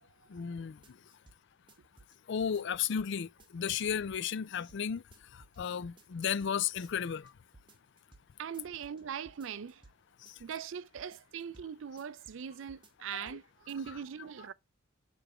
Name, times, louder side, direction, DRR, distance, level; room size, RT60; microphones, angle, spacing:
voice 1, 0.3-0.8 2.3-5.0 5.6-7.3 13.1-13.4, left 7 dB, 60° left, 0.4 m, -34 dB
sound 1, 0.8-1.4 1.7-3.1 3.4-3.9 4.1-4.8 5.1-5.6 5.8-6.5 6.8-7.3 7.5-8.3 8.5-10.0 10.3-10.7 11.0-11.7 12.0-12.4 12.7-13.4 13.7-13.8, right 3 dB, 25° right, 1.0 m, -60 dB
voice 2, 8.4-9.8 10.4-14.5, right 7 dB, 65° right, 0.4 m, -41 dB
6.9 x 3.3 x 4.8 m
head